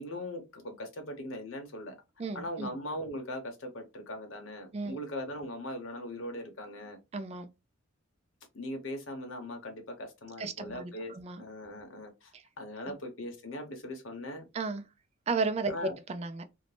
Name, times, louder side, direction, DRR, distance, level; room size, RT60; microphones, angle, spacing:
voice 1, 0.0-1.9 2.3-7.0 8.5-14.5 15.7-15.9, left 1 dB, 75° left, 0.9 m, -40 dB
voice 2, 2.2-2.7 4.7-5.0 7.1-7.5 10.4-11.4 12.3-12.4 12.9-13.0 14.5-14.8 15.3-16.4, right 3 dB, 30° right, 0.3 m, -34 dB
2.6 x 2.1 x 3.2 m
head